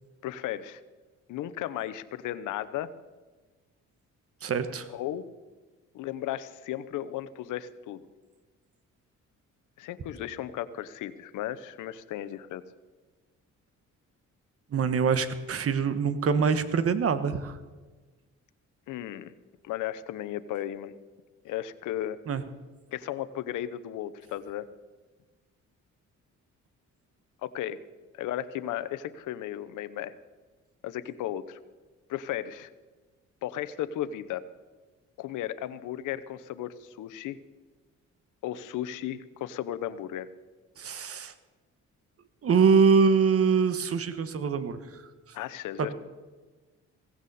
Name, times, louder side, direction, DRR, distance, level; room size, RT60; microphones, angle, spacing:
voice 1, 0.2-0.8 1.3-2.9 4.9-5.3 5.9-8.0 9.8-12.7 18.9-19.3 19.6-20.9 21.4-22.2 22.9-24.7 27.4-27.8 28.1-30.1 30.8-31.6 32.1-32.7 33.4-34.4 35.2-37.4 38.4-40.3 45.3-45.9, left 12 dB, 85° left, 14 dB, 0.9 m, -35 dB
voice 2, 4.4-4.9 14.7-17.6 22.3-22.4 40.8-41.3 42.4-45.0 45.8-45.9, right 5 dB, 50° right, 12 dB, 1.4 m, -24 dB
17.0 x 15.5 x 4.2 m, 1.3 s
cardioid pair, 90°, 30 cm